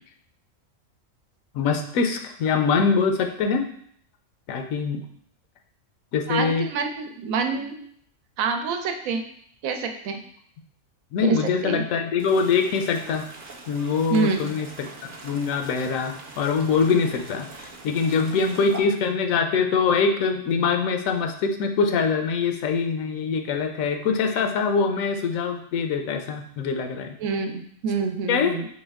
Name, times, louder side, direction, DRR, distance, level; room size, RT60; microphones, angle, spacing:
voice 1, 1.5-3.7 4.5-5.0 6.1-6.7 11.1-13.2 13.7-14.9 15.2-27.2 28.3-28.5, left 5 dB, 80° left, 5 dB, 1.0 m, -23 dB
voice 2, 6.3-7.8 8.4-9.2 9.6-10.2 11.2-11.8 14.1-14.4 16.9-17.0 27.2-28.7, right 5 dB, 85° right, 5 dB, 1.0 m, -27 dB
sound 1, 12.2-18.8, right 3 dB, 50° right, 0.7 m, -43 dB
4.3 x 3.1 x 3.4 m, 0.64 s
omnidirectional pair, 1.4 m